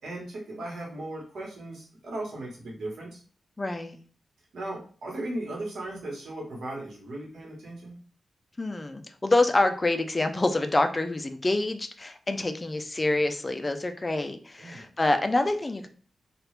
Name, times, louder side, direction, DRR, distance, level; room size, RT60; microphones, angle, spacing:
voice 1, 0.0-3.2 4.5-7.9 14.6-14.8, right 1 dB, 75° right, -3 dB, 1.3 m, -37 dB
voice 2, 3.6-4.0 8.6-15.9, left 2 dB, 20° left, 7 dB, 0.3 m, -26 dB
3.0 x 2.4 x 3.2 m, 0.42 s
wide cardioid pair, 170°, 0 cm